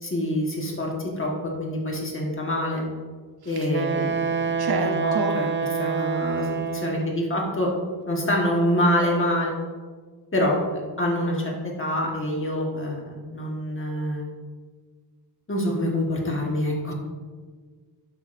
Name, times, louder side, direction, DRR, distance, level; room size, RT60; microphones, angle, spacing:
voice 1, 0.0-2.8 3.4-6.5 6.7-7.7 8.1-9.6 10.3-10.6 11.0-14.3 15.5-16.9, left 1 dB, 30° left, -2 dB, 1.4 m, -26 dB
Wind instrument woodwind instrument, 3.7-7.2, right 5 dB, 30° right, 0.4 m, -27 dB
voice 2, 4.6-5.4, right 5 dB, 65° right, 6 dB, 0.7 m, -28 dB
11.5 x 5.8 x 2.6 m, 1.5 s
wide cardioid pair, 170°, 42 cm